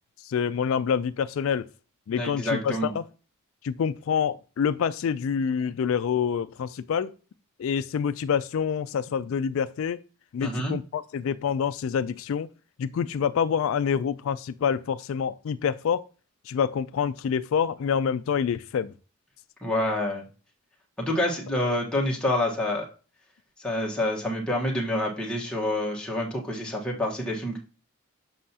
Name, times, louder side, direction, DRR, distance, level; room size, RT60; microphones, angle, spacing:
voice 1, 0.2-1.7 2.1-3.0 3.6-7.1 7.6-10.0 10.3-12.5 12.8-16.0 16.5-18.9, left 7 dB, 65° left, 0.3 m, -27 dB
voice 2, 2.2-2.9 10.4-10.7 19.6-20.2 21.0-22.9 23.6-27.6, left 1 dB, 5° left, 1.2 m, -27 dB
7.4 x 5.6 x 2.8 m
head